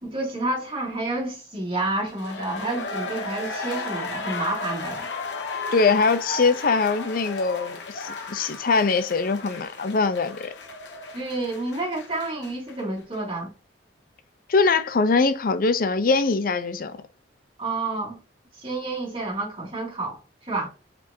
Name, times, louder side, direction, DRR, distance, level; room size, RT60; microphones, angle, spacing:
voice 1, 0.0-5.1 11.1-13.5 17.6-18.2 18.6-20.7, right 2 dB, 30° right, 2.3 m, -29 dB
sound 1, 2.0-12.8 13.1-13.2, left 3 dB, 80° left, 1.4 m, -34 dB
voice 2, 5.7-10.5 14.5-17.0, left 4 dB, 50° left, 0.5 m, -22 dB
4.4 x 4.3 x 2.7 m
head